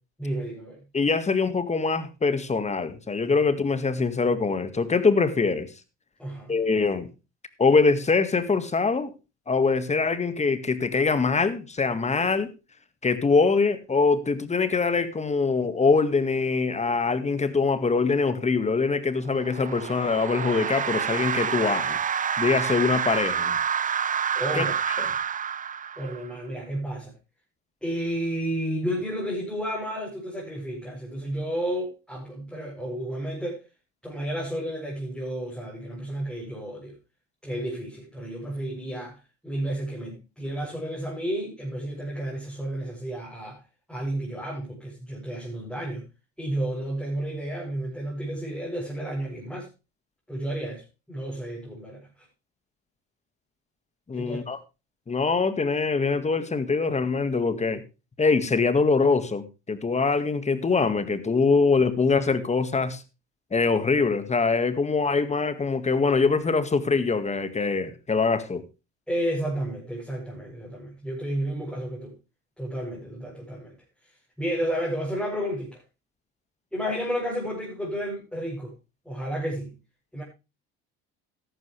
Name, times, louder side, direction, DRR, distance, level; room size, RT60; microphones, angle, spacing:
voice 1, 0.2-0.8 6.2-6.6 12.1-12.3 24.3-24.8 26.0-27.1 27.8-33.6 34.0-37.0 37.4-43.6 43.9-46.0 46.4-49.7 50.3-52.1 54.1-54.4 69.1-72.1 72.6-73.8 74.4-75.8 76.7-78.7 79.0-79.7 80.1-80.2, right 1 dB, 5° left, 7.8 m, -31 dB
voice 2, 0.9-5.7 6.5-7.1 7.6-9.1 9.5-12.5 13.0-22.0 22.4-23.6 24.5-24.6 25.0-25.1 54.1-54.6 55.1-57.8 58.2-63.0 63.5-68.6, left 4 dB, 25° left, 1.8 m, -23 dB
sound 1, 19.3-26.3, right 7 dB, 25° right, 0.6 m, -28 dB
13.5 x 11.5 x 3.3 m
supercardioid pair, 85°, 30 cm